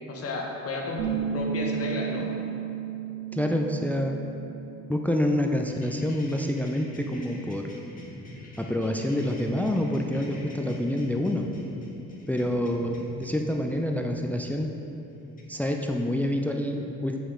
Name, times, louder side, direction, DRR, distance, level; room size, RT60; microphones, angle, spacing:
voice 1, 0.1-2.3 12.3-12.6, left 2 dB, 50° left, -1 dB, 1.3 m, -33 dB
Bass guitar, 1.0-5.3 5.6-7.2, right 8 dB, 85° right, 0.6 m, -34 dB
voice 2, 3.3-4.2 4.9-7.7 8.6-11.5 12.3-14.7 15.5-17.2, left 1 dB, 5° left, 3 dB, 0.4 m, -27 dB
sound 1, 5.7-16.3, left 1 dB, 30° left, 1.4 m, -46 dB
8.0 x 5.0 x 3.7 m, 2.8 s
cardioid pair, 90°, 30 cm